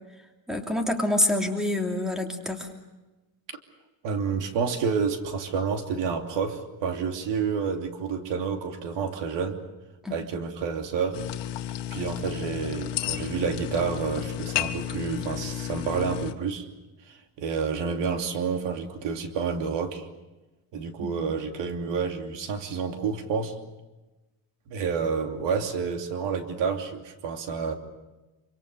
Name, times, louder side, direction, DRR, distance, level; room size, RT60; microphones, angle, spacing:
voice 1, 0.5-2.7 10.0-10.2 21.0-21.1, left 1 dB, ahead, 4 dB, 2.9 m, -26 dB
voice 2, 4.0-9.6 10.1-11.2 11.9-16.7 17.0-20.1 20.7-23.6 24.7-27.7, right 5 dB, 75° right, 6 dB, 3.0 m, -29 dB
sound 1, 11.1-16.3, left 12 dB, 70° left, 1.9 m, -32 dB
26.5 x 25.5 x 6.8 m, 1.1 s
cardioid pair, 165°, 43 cm